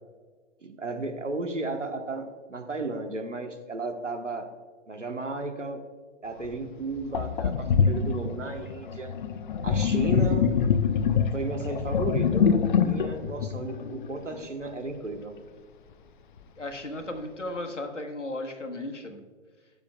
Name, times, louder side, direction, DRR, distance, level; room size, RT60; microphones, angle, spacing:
voice 1, 0.6-4.5 4.9-5.8 6.2-9.1 9.6-10.5 11.3-15.3, right 3 dB, 85° right, 4 dB, 1.3 m, -34 dB
Sink (filling or washing), 6.4-6.5 7.1-14.4, left 7 dB, 45° left, 0.5 m, -25 dB
voice 2, 16.6-19.2, left 1 dB, 85° left, 5 dB, 1.4 m, -35 dB
16.5 x 6.8 x 2.3 m, 1.5 s
figure-of-eight pair, 120°, 36 cm